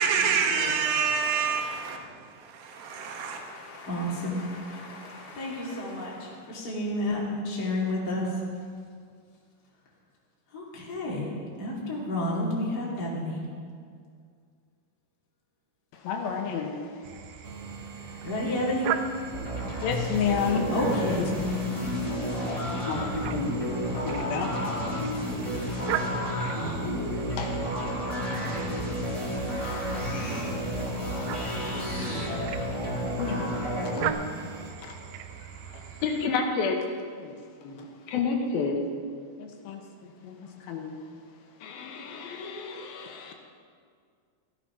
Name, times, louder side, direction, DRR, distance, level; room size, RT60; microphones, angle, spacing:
voice 1, 0.0-2.0 3.0-3.4, right 6 dB, 70° right, 3.1 m, -26 dB
voice 2, 0.5-0.8 3.2-8.3 10.5-11.3 11.6-13.4 18.2-18.9 20.7-21.2, left 1 dB, 30° left, 2.6 m, -31 dB
voice 3, 15.9-18.3 19.8-20.7 21.2-36.9 37.2-38.9 39.4-43.3, left 5 dB, 75° left, 2.9 m, -34 dB
sound 1, 17.0-36.3, right 10 dB, 90° right, 2.6 m, -40 dB
sound 2, 17.4-34.7, right 5 dB, 50° right, 1.9 m, -43 dB
sound 3, 19.3-34.1, equal, 10° left, 2.9 m, -31 dB
15.0 x 12.0 x 5.9 m
omnidirectional pair, 4.5 m